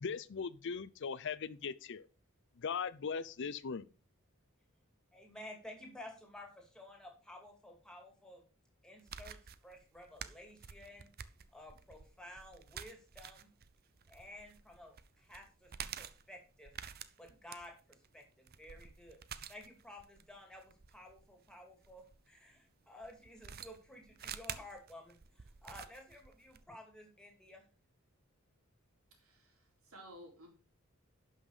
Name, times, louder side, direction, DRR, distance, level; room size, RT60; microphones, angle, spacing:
voice 1, 0.0-2.1 2.6-3.9, left 6 dB, 60° left, 0.5 m, -39 dB
voice 2, 5.1-8.4 8.8-9.4 9.6-11.1 11.5-13.5 14.1-15.7 16.0-16.7 17.2-19.2 19.5-27.6, left 1 dB, 5° left, 2.6 m, -53 dB
sound 1, 9.0-22.2 23.0-26.6, right 8 dB, 45° right, 0.7 m, -49 dB
voice 3, 29.2-29.6 29.9-30.5, equal, 85° right, 3.8 m, -54 dB
11.5 x 5.7 x 4.9 m
head